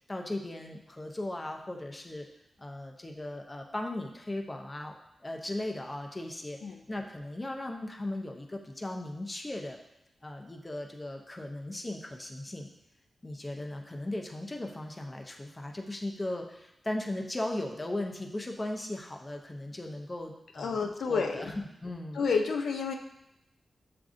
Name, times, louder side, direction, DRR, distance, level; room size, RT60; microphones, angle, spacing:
voice 1, 0.0-2.3 2.6-6.6 6.9-9.8 10.2-12.7 13.2-20.8 21.1-22.2, left 1 dB, 20° left, 2 dB, 0.4 m, -37 dB
voice 2, 20.6-21.5 22.2-22.9, left 5 dB, 90° left, 4 dB, 0.4 m, -30 dB
6.9 x 2.5 x 2.4 m, 0.86 s
wide cardioid pair, 130°, 0 cm